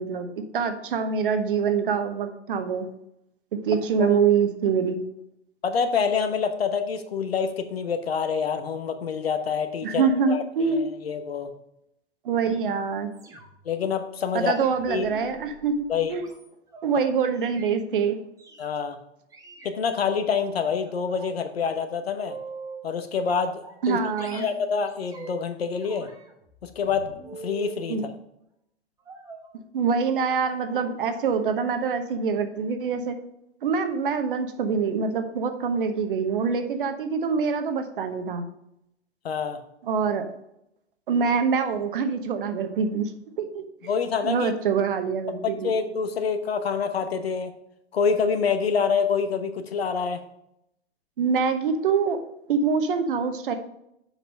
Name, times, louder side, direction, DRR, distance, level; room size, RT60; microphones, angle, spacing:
voice 1, 0.0-2.9 3.5-5.0 9.8-10.9 12.2-13.1 14.3-16.3 16.8-18.2 23.8-24.5 27.9-28.0 29.7-33.2 33.6-38.5 39.8-40.3 41.1-43.1 43.4-43.6 44.2-45.7 51.2-52.2 52.5-53.5, right 6 dB, 50° right, 8 dB, 1.1 m, -25 dB
voice 2, 5.6-11.5 13.6-14.5 14.9-15.1 15.9-16.1 18.6-19.0 19.6-22.4 22.8-24.0 24.3-26.1 26.6-28.1 39.2-39.6 43.8-44.5 45.3-47.5 47.9-50.2, left 6 dB, 60° left, 9 dB, 1.0 m, -27 dB
sound 1, 13.1-13.7 14.4-16.9 17.3-17.7 18.4-18.7 19.3-20.4 20.8-21.4 21.7-22.9 23.3-23.9 24.2-25.5 25.8-27.9 29.0-29.5 30.2-30.4 30.6-30.8 31.2-31.4 31.7-31.8, right 3 dB, 10° right, 1.0 m, -44 dB
7.2 x 5.8 x 5.4 m, 0.80 s
figure-of-eight pair, 110°, 34 cm